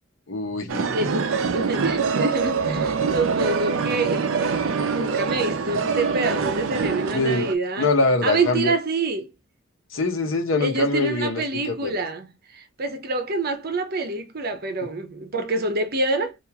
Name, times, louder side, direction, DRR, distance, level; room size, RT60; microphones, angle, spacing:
voice 1, 0.3-0.9 7.1-7.5 7.8-8.8 9.9-11.4 11.8-11.9, left 3 dB, 85° left, 0.9 m, -23 dB
sound 1, 0.7-7.5, right 5 dB, 85° right, 0.5 m, -24 dB
voice 2, 0.9-4.3 4.9-7.9 8.2-9.3 10.6-16.4, right 2 dB, 50° right, 0.8 m, -27 dB
3.4 x 2.5 x 2.9 m
head